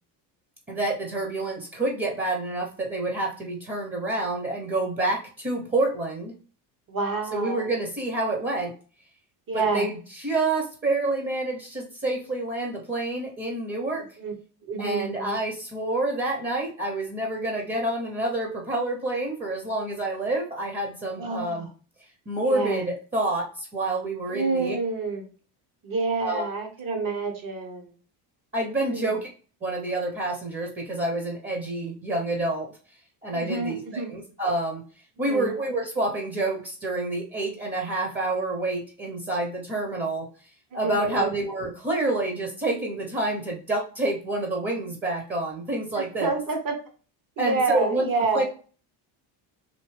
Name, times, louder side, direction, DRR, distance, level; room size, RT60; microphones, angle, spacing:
voice 1, 0.7-6.3 7.3-8.7 9.5-14.1 14.8-21.7 22.3-24.8 26.2-26.5 28.5-29.3 29.6-32.7 33.2-34.8 35.2-40.3 40.7-46.3 47.4-48.4, right 2 dB, 20° right, 0 dB, 1.0 m, -28 dB
voice 2, 6.9-7.7 9.5-9.9 14.2-14.3 14.6-15.4 21.2-21.7 22.4-22.9 24.3-25.2 25.8-27.9 28.8-29.2 33.3-34.1 35.2-35.5 40.7-41.4 46.0-46.8 47.4-48.4, right 3 dB, 45° right, 3 dB, 1.3 m, -28 dB
4.2 x 2.7 x 3.3 m, 0.39 s
cardioid pair, 115°, 48 cm